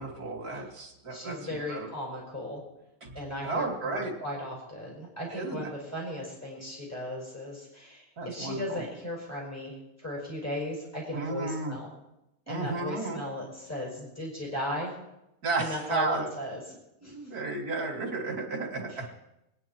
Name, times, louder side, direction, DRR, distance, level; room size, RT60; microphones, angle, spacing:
voice 1, 0.0-1.4 1.7-1.9 3.0-3.1 3.4-4.1 5.3-5.7 8.2-8.8 11.1-11.7 12.5-13.2 15.4-16.3 17.0-19.1, right 3 dB, 80° right, -1 dB, 2.7 m, -33 dB
voice 2, 1.1-2.6 3.1-11.9 12.5-14.9 15.6-16.6 17.0-17.1 18.9-19.1, left 1 dB, 10° left, -4 dB, 5.6 m, -36 dB
26.5 x 10.0 x 4.4 m, 0.89 s
omnidirectional pair, 1.6 m